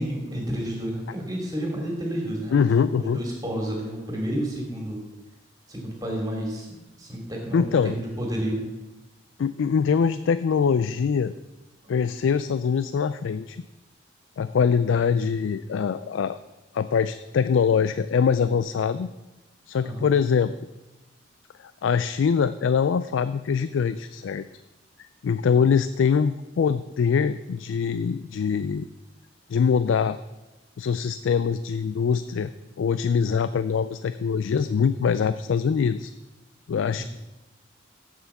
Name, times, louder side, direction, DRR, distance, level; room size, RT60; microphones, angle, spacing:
voice 1, 0.0-2.7 2.9-5.0 5.7-8.7 11.8-11.9 19.8-20.1 36.9-37.0, equal, 20° right, -1 dB, 2.5 m, -30 dB
voice 2, 2.5-3.2 7.5-7.9 9.4-11.4 11.9-13.6 14.4-16.4 16.7-19.1 19.7-20.5 21.6-24.4 25.2-28.9 29.5-30.2 30.8-32.5 32.8-36.1 36.7-37.0, left 6 dB, 80° left, 13 dB, 0.3 m, -23 dB
8.1 x 7.6 x 7.2 m, 1.0 s
head